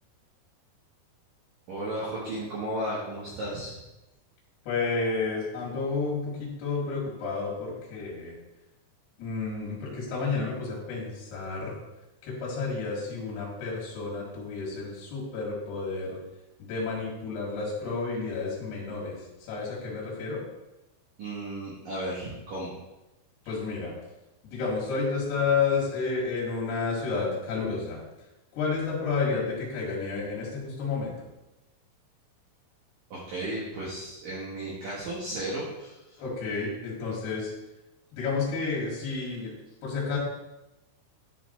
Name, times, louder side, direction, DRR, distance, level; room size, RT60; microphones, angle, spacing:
voice 1, 1.7-3.8 21.2-22.7 33.1-35.9, right 1 dB, 70° right, -6 dB, 2.2 m, -34 dB
voice 2, 4.7-8.3 9.2-11.8 12.2-16.2 16.6-19.2 19.5-20.4 23.5-23.9 24.4-28.0 28.5-31.1 36.2-37.5 38.1-39.6 39.8-40.2, left 4 dB, 60° left, -4 dB, 3.5 m, -31 dB
11.0 x 4.0 x 4.4 m, 0.97 s
omnidirectional pair, 5.9 m